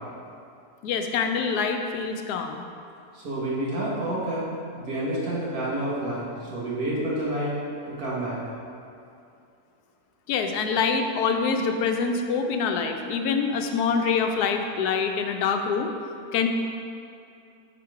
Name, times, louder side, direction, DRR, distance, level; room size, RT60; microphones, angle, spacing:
voice 1, 0.8-2.6 10.3-15.9 16.3-16.5, left 5 dB, 85° left, 5 dB, 1.1 m, -25 dB
voice 2, 3.1-4.5 4.8-7.5 7.9-8.4, right 1 dB, 75° right, -7 dB, 1.9 m, -29 dB
5.8 x 4.4 x 4.7 m, 2.5 s
omnidirectional pair, 1.6 m